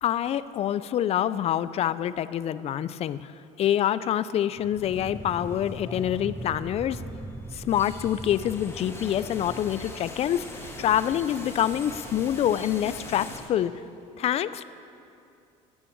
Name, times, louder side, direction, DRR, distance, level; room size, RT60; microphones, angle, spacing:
voice 1, 0.0-3.3 3.6-7.0 7.5-10.4 10.8-13.7 14.2-14.6, left 11 dB, 45° left, 16 dB, 0.5 m, -26 dB
sound 1, 4.6-11.0, right 2 dB, 5° right, 0.6 m, -40 dB
sound 2, 4.9-13.4, left 1 dB, 15° left, 2.4 m, -42 dB
15.0 x 9.9 x 8.7 m, 2.6 s
cardioid pair, 120°, 15 cm